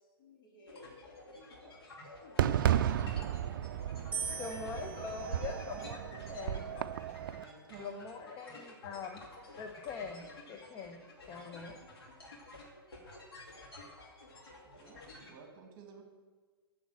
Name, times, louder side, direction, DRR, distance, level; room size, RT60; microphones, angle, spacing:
voice 1, 0.2-2.8, left 2 dB, 55° left, -2 dB, 3.1 m, -55 dB
sound 1, 0.7-15.3, left 2 dB, 75° left, 2.6 m, -52 dB
Fireworks, 2.4-7.4, right 11 dB, 55° right, 0.4 m, -33 dB
sound 2, 4.1-6.3 7.1-7.7, right 5 dB, 10° right, 2.2 m, -43 dB
voice 2, 4.4-6.9 7.8-9.2 9.6-11.8 12.0-12.1, left 5 dB, 30° left, 4 dB, 0.9 m, -43 dB
voice 3, 7.4-8.0 8.5-8.7 14.6-16.0, right 6 dB, 35° right, 3 dB, 2.0 m, -54 dB
7.1 x 6.9 x 7.5 m, 1.4 s
figure-of-eight pair, 115°, 13 cm